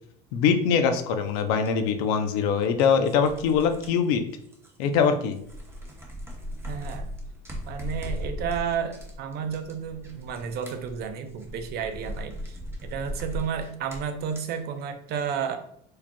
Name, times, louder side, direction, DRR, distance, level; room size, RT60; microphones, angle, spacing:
voice 1, 0.3-4.2 4.8-5.4, left 6 dB, 80° left, 7 dB, 0.6 m, -23 dB
sound 1, 1.7-1.8 2.6-5.1 5.3-14.6, equal, 10° right, 0.9 m, -38 dB
voice 2, 6.7-7.1 7.7-15.6, right 7 dB, 55° right, 8 dB, 0.6 m, -32 dB
4.7 x 2.9 x 2.2 m, 0.68 s
supercardioid pair, 100°, 19 cm